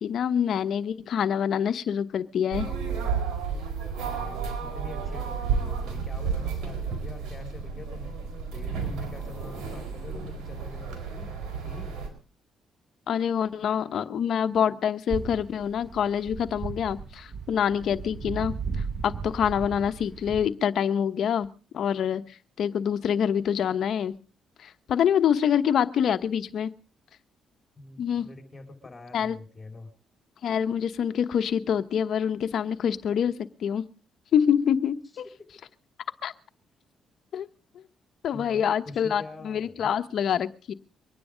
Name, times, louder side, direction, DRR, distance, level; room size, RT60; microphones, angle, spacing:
voice 1, 0.0-2.7 13.1-18.5 19.0-21.5 21.7-24.1 24.6-26.7 28.0-28.3 29.1-29.4 30.4-33.8 34.3-35.2 36.2-36.3 37.3-37.5 37.7-37.8 38.2-40.7, left 8 dB, 65° left, 10 dB, 1.1 m, -26 dB
sound 1, 2.5-12.1, right 5 dB, 85° right, 4.3 m, -32 dB
voice 2, 4.0-8.2 8.5-11.3 11.6-12.0 27.8-29.9 38.3-39.9, left 2 dB, 25° left, 6 dB, 4.2 m, -45 dB
sound 2, 15.1-20.5, right 5 dB, 45° right, 1.5 m, -36 dB
24.0 x 9.8 x 5.1 m, 0.37 s
cardioid pair, 90°, 0 cm